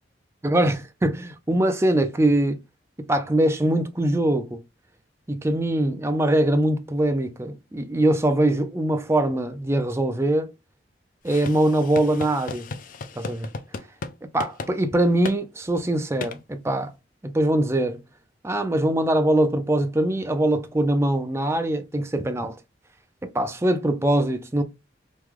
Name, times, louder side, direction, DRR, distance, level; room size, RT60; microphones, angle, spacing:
voice 1, 0.4-2.6 3.1-4.6 5.3-10.5 11.2-12.6 13.2-13.5 14.3-16.9 17.2-18.0 18.4-22.6 23.2-24.6, right 1 dB, 15° right, 0.4 m, -22 dB
sound 1, 11.3-14.1 14.4-14.7 15.2-15.4 16.2-16.4, left 4 dB, 45° left, 0.4 m, -35 dB
3.1 x 2.3 x 3.5 m
head